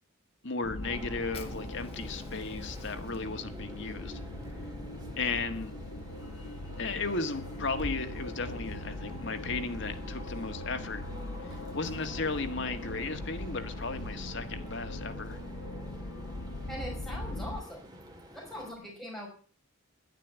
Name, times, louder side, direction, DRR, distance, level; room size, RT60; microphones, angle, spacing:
voice 1, 0.4-4.2 5.2-5.7 6.8-11.0 11.4-15.4, left 3 dB, 60° left, 7 dB, 1.7 m, -35 dB
sound 1, 0.6-17.6, left 1 dB, 85° left, 1.1 m, -40 dB
sound 2, 0.8-18.7, right 1 dB, 20° right, 2.6 m, -49 dB
Fire, 1.3-8.0, left 2 dB, 30° left, 2.4 m, -49 dB
voice 2, 16.7-18.0 18.3-19.3, equal, ahead, -3 dB, 5.3 m, -41 dB
12.0 x 11.0 x 8.1 m, 0.40 s
head